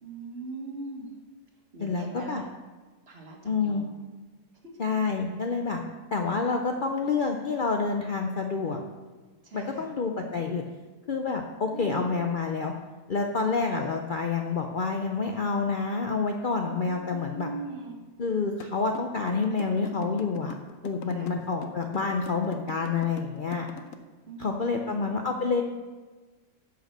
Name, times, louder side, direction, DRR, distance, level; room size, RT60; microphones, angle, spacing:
voice 1, 0.0-1.1 1.7-2.5 3.1-3.9 4.6-4.7 9.4-9.9 11.7-12.2 16.6-18.0 21.1-21.3 24.2-25.2, right 3 dB, 40° right, 1 dB, 1.6 m, -41 dB
voice 2, 1.8-2.4 3.4-3.8 4.8-5.8 6.1-8.8 9.5-10.6 11.1-12.7 13.1-17.5 18.2-20.6 20.8-23.7 24.4-25.6, left 4 dB, 80° left, 3 dB, 0.4 m, -28 dB
sound 1, 18.6-23.9, left 5 dB, 60° left, 1.0 m, -42 dB
10.0 x 5.6 x 6.5 m, 1.3 s
omnidirectional pair, 1.8 m